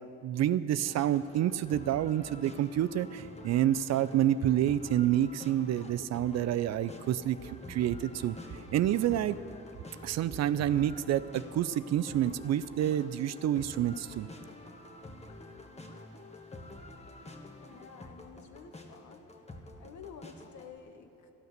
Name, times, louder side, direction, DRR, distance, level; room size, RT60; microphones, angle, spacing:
voice 1, 0.2-8.4 8.7-9.4 10.0-14.3, right 11 dB, 60° right, 14 dB, 0.5 m, -28 dB
sound 1, 0.8-20.8, left 2 dB, 20° left, 1.5 m, -48 dB
voice 2, 17.7-19.3 19.8-21.3, left 6 dB, 70° left, 6 dB, 1.3 m, -51 dB
12.0 x 11.0 x 6.6 m, 2.9 s
cardioid pair, 90°, 30 cm